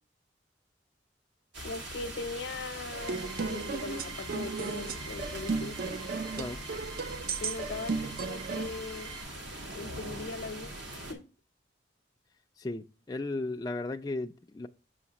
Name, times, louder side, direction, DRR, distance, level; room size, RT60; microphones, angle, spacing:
sound 1, 1.5-11.1, right 1 dB, 70° right, 1.5 m, -42 dB
voice 1, 1.6-6.0 7.4-9.2 9.8-11.2, left 3 dB, 70° left, 0.7 m, -40 dB
sound 2, 2.9-9.2, right 6 dB, 25° right, 0.8 m, -48 dB
sound 3, 2.9-8.7, right 4 dB, 55° right, 0.4 m, -35 dB
voice 2, 12.6-14.7, left 2 dB, 20° left, 0.3 m, -35 dB
7.2 x 6.3 x 2.9 m
head